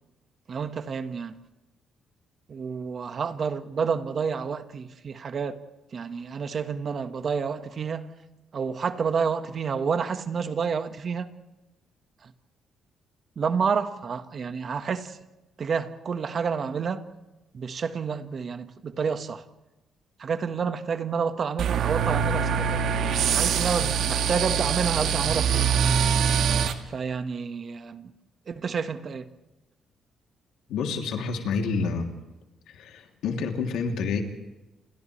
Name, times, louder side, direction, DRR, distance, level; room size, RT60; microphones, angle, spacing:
voice 1, 0.5-1.4 2.5-5.6 5.9-8.1 8.5-11.3 12.2-12.3 13.3-15.2 15.6-17.0 17.5-19.4 20.2-22.8 23.2-25.7 26.9-28.1 28.5-29.3, right 6 dB, 50° right, 1.5 m, -29 dB
sound 1, 21.6-26.7, right 7 dB, 75° right, 1.7 m, -24 dB
voice 2, 30.7-32.1 32.7-34.2, left 5 dB, 85° left, 3.0 m, -28 dB
29.5 x 28.0 x 3.3 m
cardioid pair, 90°, 0 cm